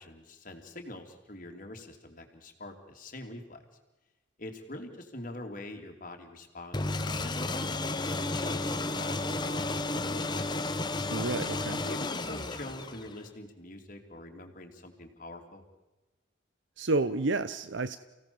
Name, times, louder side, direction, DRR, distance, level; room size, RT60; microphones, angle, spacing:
voice 1, 0.0-3.6 4.4-10.6 11.7-15.6, left 1 dB, 45° left, 3 dB, 3.1 m, -45 dB
sound 1, 6.7-13.3, left 2 dB, 25° left, 1.2 m, -32 dB
voice 2, 11.1-11.8 16.8-18.0, right 3 dB, 80° right, 13 dB, 0.8 m, -30 dB
29.5 x 17.0 x 7.2 m, 1.1 s
head